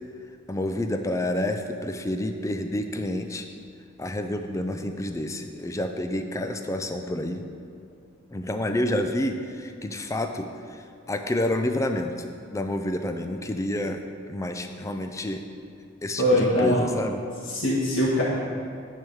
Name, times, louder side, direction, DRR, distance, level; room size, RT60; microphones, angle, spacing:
voice 1, 0.5-3.5 4.0-7.4 8.3-10.8 11.1-14.0 14.3-15.4 16.0-17.2, left 1 dB, 15° left, 6 dB, 0.4 m, -29 dB
voice 2, 16.2-16.8 17.5-18.2, left 1 dB, 80° left, -10 dB, 1.5 m, -22 dB
9.2 x 3.6 x 6.2 m, 2.4 s
head